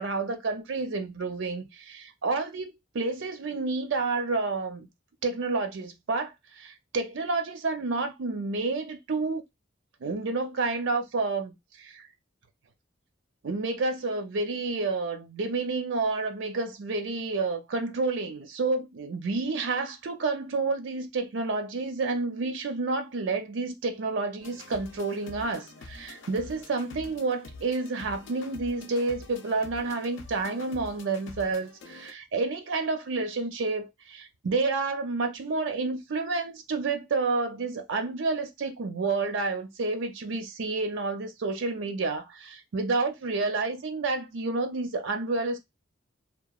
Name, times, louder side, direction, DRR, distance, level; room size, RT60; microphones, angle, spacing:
voice 1, 0.0-4.9 5.2-9.4 10.0-12.1 13.4-45.6, right 3 dB, 70° right, 0.5 m, -30 dB
sound 1, 24.4-32.1, left 3 dB, 75° left, 0.5 m, -46 dB
2.9 x 2.2 x 2.3 m
head